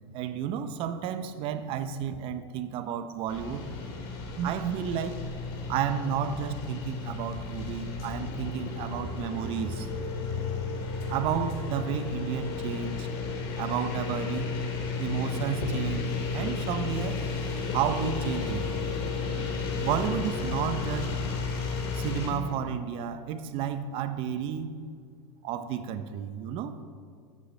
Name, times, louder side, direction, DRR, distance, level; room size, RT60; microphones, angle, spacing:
voice 1, 0.1-3.7 4.4-5.2 5.7-9.9 11.1-13.1 13.6-14.5 15.0-17.2 17.7-18.7 19.8-21.2 21.9-24.7 25.4-26.8, right 8 dB, 40° right, 11 dB, 0.6 m, -32 dB
sound 1, 3.3-22.3, left 4 dB, 45° left, 2.3 m, -33 dB
14.0 x 8.0 x 3.2 m, 2.1 s
supercardioid pair, 145°, 14 cm